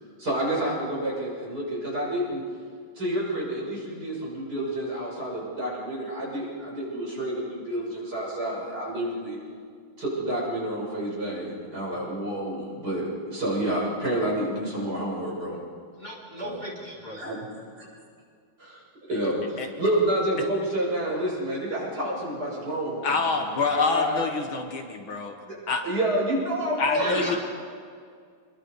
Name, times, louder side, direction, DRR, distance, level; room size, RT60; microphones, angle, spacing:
voice 1, 0.2-2.4 3.0-9.4 10.0-15.6 16.4-16.6 17.1-17.9 18.6-18.8 19.1-24.2 25.4-25.6 25.8-27.4, right 1 dB, 45° right, -5 dB, 7.5 m, -29 dB
voice 2, 16.0-17.3 26.9-27.4, equal, 20° left, -4 dB, 3.3 m, -36 dB
voice 3, 23.0-25.4 25.7-25.8 26.8-27.4, left 4 dB, 70° left, 4 dB, 2.4 m, -26 dB
28.5 x 22.5 x 4.9 m, 2.1 s
omnidirectional pair, 2.4 m